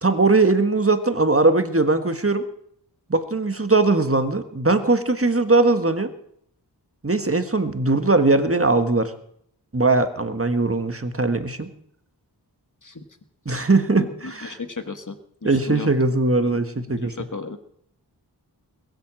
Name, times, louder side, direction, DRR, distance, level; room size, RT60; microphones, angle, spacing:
voice 1, 0.0-2.4 3.1-6.1 7.0-9.1 9.7-11.7 13.4-14.6 15.4-17.1, right 3 dB, 35° right, 8 dB, 1.5 m, -20 dB
voice 2, 13.9-15.2 15.4-15.9 16.4-16.6 17.0-17.6, left 4 dB, 45° left, 9 dB, 1.5 m, -34 dB
21.5 x 8.0 x 7.5 m, 0.69 s
wide cardioid pair, 45°, 41 cm